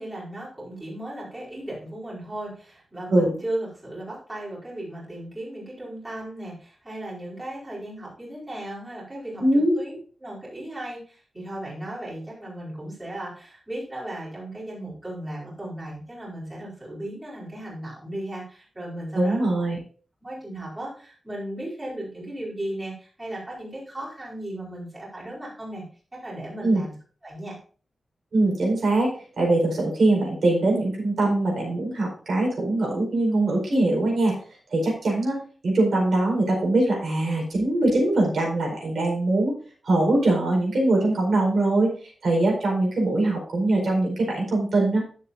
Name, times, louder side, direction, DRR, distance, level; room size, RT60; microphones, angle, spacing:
voice 1, 0.0-9.4 9.8-19.5 20.2-25.8 26.1-27.0 27.2-27.6, right 1 dB, 15° right, -7 dB, 4.8 m, -36 dB
voice 2, 9.4-9.7 19.1-19.8 26.6-26.8 28.3-34.4 34.7-35.4 35.6-39.5 39.8-41.9 42.2-45.0, right 2 dB, 65° right, -2 dB, 4.5 m, -22 dB
12.5 x 7.6 x 2.7 m, 0.41 s
wide cardioid pair, 170°, 0 cm